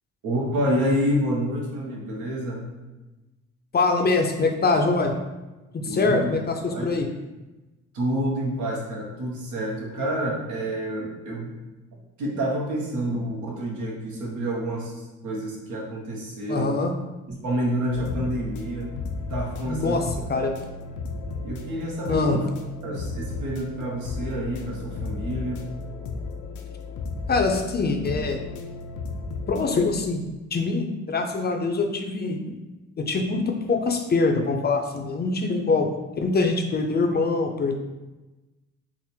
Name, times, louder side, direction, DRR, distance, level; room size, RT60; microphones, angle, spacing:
voice 1, 0.2-2.7 5.9-6.3 6.7-6.9 7.9-11.5 12.2-16.7 17.3-19.0 19.3-20.1 20.7-20.8 21.4-22.5 22.8-25.7, equal, 80° right, -2 dB, 1.1 m, -28 dB
voice 2, 3.7-5.1 5.7-7.1 16.5-16.9 19.7-20.5 22.1-22.4 27.3-28.4 29.5-30.2 30.5-32.5 33.0-35.9 36.2-37.8, left 3 dB, 35° left, 4 dB, 0.5 m, -24 dB
sound 1, 17.9-29.9, left 3 dB, 80° left, 0.5 m, -34 dB
3.5 x 2.1 x 4.3 m, 1.1 s
cardioid pair, 90°, 30 cm